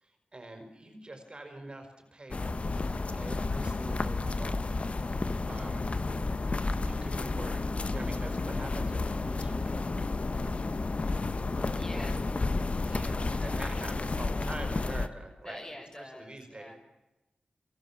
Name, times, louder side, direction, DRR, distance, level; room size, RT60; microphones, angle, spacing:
voice 1, 0.0-2.6 3.1-4.6 5.4-5.9 6.8-10.0 10.3-10.7 11.6-12.1 12.8-16.7, right 2 dB, 35° right, 5 dB, 5.1 m, -45 dB
sound 1, 2.3-15.1, left 3 dB, 45° left, 1.4 m, -31 dB
voice 2, 11.7-12.5 13.1-13.6 15.4-16.7, left 1 dB, 25° left, 2 dB, 6.6 m, -46 dB
28.0 x 23.0 x 7.4 m, 1.0 s
cardioid pair, 65°, 3 cm